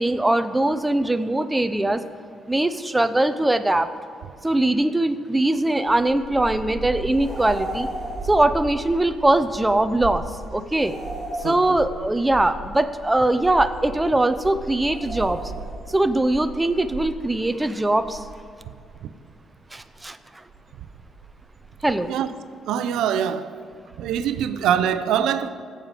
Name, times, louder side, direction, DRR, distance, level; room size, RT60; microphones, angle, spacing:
voice 1, 0.0-2.0 2.5-3.9 4.4-7.9 8.2-10.2 10.5-10.9 11.4-15.4 15.9-18.2 19.7-20.2 21.8-22.1, right 1 dB, 10° right, 0.6 m, -21 dB
sound 1, 5.9-19.3 19.8-20.0 20.2-22.0, right 4 dB, 65° right, 1.8 m, -38 dB
sound 2, 7.1-8.5 10.7-12.2 14.9-16.0, right 1 dB, 10° left, 3.2 m, -34 dB
voice 2, 22.7-23.6 24.0-25.5, right 9 dB, 90° right, 0.5 m, -23 dB
16.0 x 7.4 x 5.1 m
cardioid pair, 90°, 0 cm